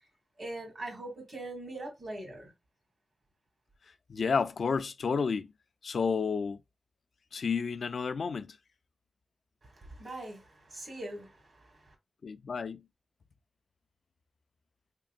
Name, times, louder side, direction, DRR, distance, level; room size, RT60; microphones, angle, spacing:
voice 1, 0.4-2.5 9.6-11.9, right 1 dB, 65° right, 2.2 m, -42 dB
voice 2, 4.1-5.5 5.8-6.6 7.3-8.6 12.2-12.8, left 5 dB, 90° left, 0.3 m, -31 dB
3.7 x 3.6 x 2.4 m
wide cardioid pair, 90°, 0 cm